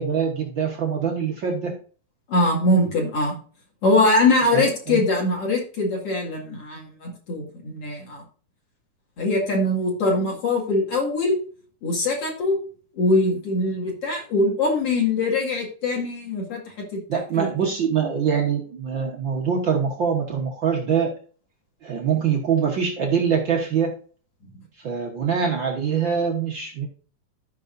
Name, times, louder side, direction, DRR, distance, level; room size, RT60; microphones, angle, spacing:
voice 1, 0.0-1.8 4.5-5.0 17.1-21.1 21.8-23.9 24.8-26.9, right 7 dB, 70° right, 0 dB, 1.1 m, -24 dB
voice 2, 2.3-3.4 3.8-8.2 9.2-11.4 11.8-12.6 13.0-16.6 16.9-17.0 17.4-17.5, left 2 dB, 45° left, -2 dB, 3.0 m, -22 dB
14.0 x 5.8 x 2.6 m, 0.41 s
omnidirectional pair, 4.0 m